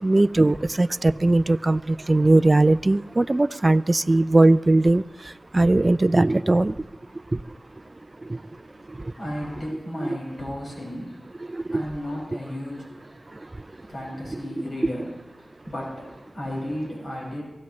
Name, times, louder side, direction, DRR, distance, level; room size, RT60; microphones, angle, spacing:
voice 1, 0.0-5.0 5.5-6.7 8.3-8.4 10.0-10.2 11.5-11.8, right 2 dB, 30° right, 14 dB, 0.4 m, -19 dB
voice 2, 8.3-15.1 15.4-17.4, equal, 65° left, -3 dB, 6.3 m, -35 dB
23.5 x 15.0 x 3.2 m, 1.1 s
cardioid pair, 60°, 0 cm